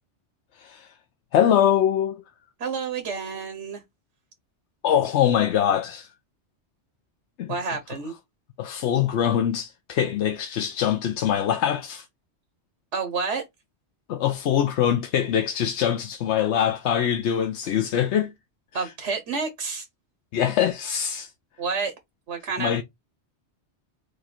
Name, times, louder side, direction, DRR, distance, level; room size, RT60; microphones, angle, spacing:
voice 1, 1.3-2.2 4.8-6.1 7.4-7.5 8.6-12.1 14.1-18.3 18.7-18.9 20.3-21.3 22.6-22.8, left 9 dB, 85° left, 0.9 m, -23 dB
voice 2, 2.6-3.8 7.5-8.1 12.9-13.4 18.7-19.9 21.6-21.9 22.3-22.8, right 5 dB, 90° right, 1.3 m, -29 dB
4.9 x 2.3 x 4.3 m
omnidirectional pair, 1.2 m